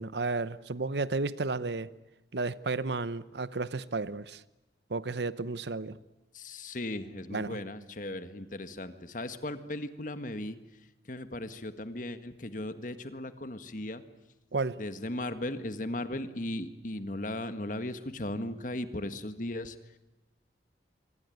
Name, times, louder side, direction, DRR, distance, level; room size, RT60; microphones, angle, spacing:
voice 1, 0.0-1.9 2.3-4.4 4.9-6.0 7.3-7.6 14.5-14.8, right 3 dB, 75° right, 16 dB, 0.9 m, -32 dB
voice 2, 6.3-10.6 11.1-14.0 14.8-20.0, left 1 dB, 45° left, 10 dB, 1.7 m, -37 dB
25.5 x 25.0 x 9.4 m, 1.0 s
head